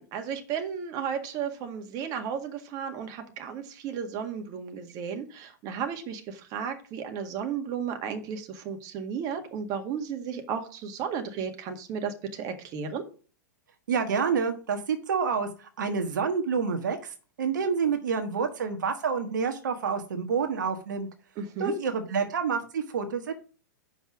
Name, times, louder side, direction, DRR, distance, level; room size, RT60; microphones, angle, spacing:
voice 1, 0.0-13.0 21.4-21.7, right 7 dB, 40° right, 5 dB, 1.8 m, -34 dB
voice 2, 13.9-15.5 15.8-17.0 17.4-21.1 21.6-23.3, right 5 dB, 70° right, 4 dB, 1.5 m, -28 dB
7.0 x 5.8 x 6.1 m, 0.38 s
hypercardioid pair, 110°, 10 cm